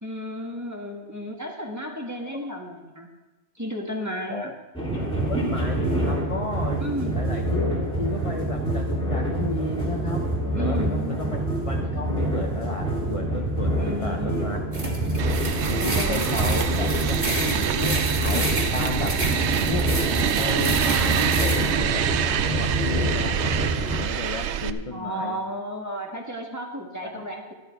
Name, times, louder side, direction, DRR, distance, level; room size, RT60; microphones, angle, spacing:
voice 1, 0.0-3.1 3.5-4.5 6.8-7.3 10.5-11.4 13.8-14.6 15.8-16.6 24.9-27.5, equal, 10° right, 0 dB, 1.5 m, -33 dB
sound 1, 4.7-24.0, right 1 dB, 5° left, 2.8 m, -26 dB
voice 2, 5.3-6.8 7.1-11.4 11.7-13.7 14.0-14.7 15.7-19.2 19.7-19.9 20.4-25.4 27.0-27.2, left 3 dB, 30° left, 2 dB, 0.8 m, -33 dB
sound 2, 14.7-21.7, right 1 dB, 30° right, 2.1 m, -31 dB
sound 3, 15.2-24.7, right 9 dB, 65° right, 0.8 m, -26 dB
14.0 x 11.0 x 4.6 m, 1.1 s
omnidirectional pair, 1.5 m